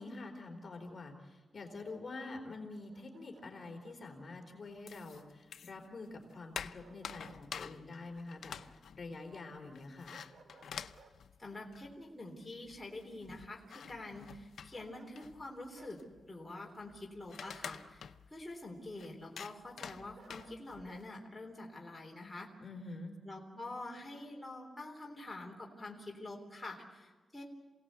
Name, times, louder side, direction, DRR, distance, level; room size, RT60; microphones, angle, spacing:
voice 1, 0.0-10.1 22.6-23.2, left 3 dB, 40° left, 2 dB, 4.0 m, -47 dB
Bark, 2.9-4.0 6.8-7.4 7.8-7.9 10.1-11.2 14.7-15.4 15.7-16.0 17.5-17.8 20.1-21.1, right 4 dB, 70° right, 2.3 m, -60 dB
sound 1, 4.9-5.9 6.2-12.1 12.4-12.5 12.6-21.0, left 7 dB, 80° left, 0.7 m, -48 dB
voice 2, 11.4-16.0 16.3-22.5 23.3-27.4, left 2 dB, 15° left, -1 dB, 3.6 m, -46 dB
27.5 x 18.0 x 8.2 m, 1.3 s
wide cardioid pair, 120°, 0 cm